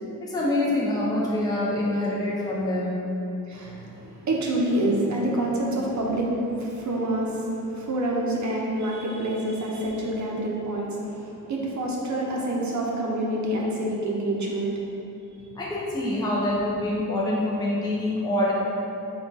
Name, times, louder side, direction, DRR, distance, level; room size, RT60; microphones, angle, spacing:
voice 1, 0.2-3.0 15.6-18.5, left 1 dB, 10° left, -6 dB, 0.5 m, -25 dB
voice 2, 3.4-14.8, right 1 dB, 55° right, -2 dB, 0.7 m, -27 dB
3.5 x 2.4 x 3.9 m, 2.9 s
wide cardioid pair, 90°, 35 cm